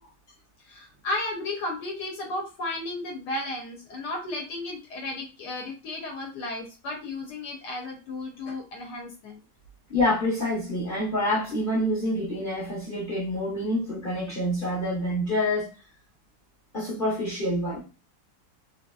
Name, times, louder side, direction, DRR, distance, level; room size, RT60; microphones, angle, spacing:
voice 1, 0.6-9.4, left 2 dB, 75° left, 1.2 m, -34 dB
voice 2, 9.9-15.7 16.7-17.8, left 1 dB, 40° left, 0.8 m, -27 dB
2.8 x 2.7 x 2.2 m
omnidirectional pair, 1.9 m